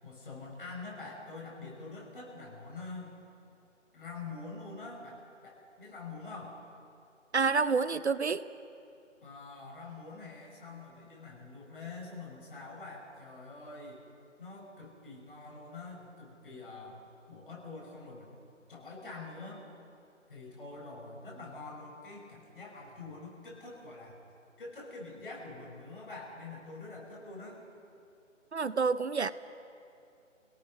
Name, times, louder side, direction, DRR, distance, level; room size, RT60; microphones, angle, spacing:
voice 1, 0.0-3.1 3.9-6.6 9.2-14.0 14.4-18.3 18.7-19.7 20.3-24.2 24.6-27.6, left 3 dB, 45° left, -2 dB, 6.3 m, -45 dB
voice 2, 7.3-8.4 28.5-29.3, right 5 dB, 60° right, 15 dB, 0.7 m, -28 dB
28.0 x 17.5 x 5.5 m, 2.6 s
figure-of-eight pair, 155°, 38 cm